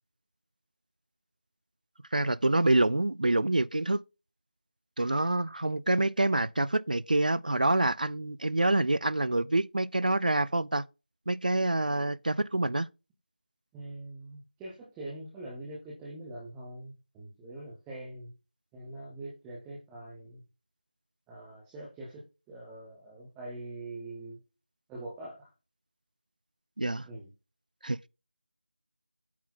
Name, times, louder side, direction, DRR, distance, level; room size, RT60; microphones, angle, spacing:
voice 1, 2.1-4.0 5.0-10.9 11.3-12.9 26.8-27.1 27.8-28.0, right 2 dB, 60° right, 0.4 m, -26 dB
voice 2, 13.7-18.3 18.7-20.4 21.3-24.4 24.9-25.5 27.1-27.3, right 2 dB, 5° right, 0.5 m, -43 dB
8.3 x 4.2 x 3.9 m
figure-of-eight pair, 165°, 5 cm